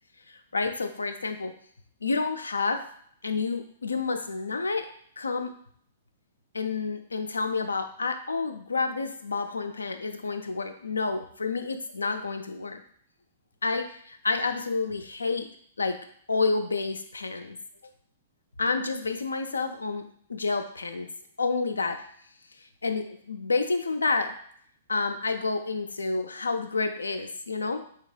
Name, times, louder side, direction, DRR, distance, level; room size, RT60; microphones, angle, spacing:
voice 1, 0.3-1.5 2.0-2.8 3.2-4.9 5.2-5.5 6.5-12.8 13.6-15.5 15.8-16.0 16.3-17.6 18.6-21.1 21.4-22.0 22.8-24.3 24.9-27.8, left 4 dB, 75° left, 7 dB, 0.4 m, -29 dB
3.4 x 2.8 x 3.2 m, 0.62 s
figure-of-eight pair, 110°, 0 cm